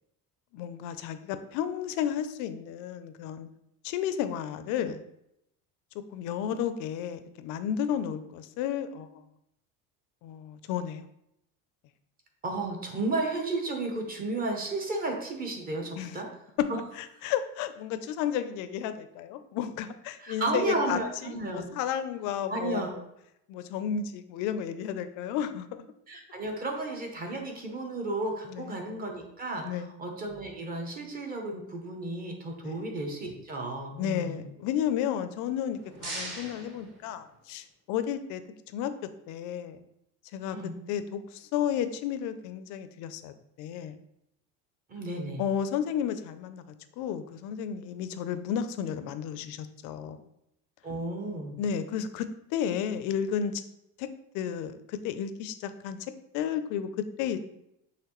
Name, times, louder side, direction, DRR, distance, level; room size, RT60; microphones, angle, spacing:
voice 1, 0.5-3.5 3.8-5.0 6.1-9.1 10.2-11.0 16.0-16.2 16.6-16.7 16.9-23.0 23.5-25.8 28.5-28.8 29.6-29.9 32.6-32.9 34.0-38.4 38.7-38.9 39.3-39.8 40.3-40.6 40.9-43.9 45.4-46.6 47.0-50.2 51.6-53.6 54.0-54.1 54.3-56.0 56.3-56.9 57.2-57.4, left 9 dB, 55° left, 11 dB, 0.4 m, -32 dB
voice 2, 12.4-16.3 20.2-21.7 22.5-22.9 26.1-34.4 40.5-40.7 44.9-45.4 50.8-51.6, right 2 dB, 25° right, 2 dB, 0.7 m, -33 dB
sound 1, 35.5-37.7, right 2 dB, 40° right, 1.6 m, -42 dB
5.7 x 3.0 x 3.0 m, 0.81 s
cardioid pair, 170°, 36 cm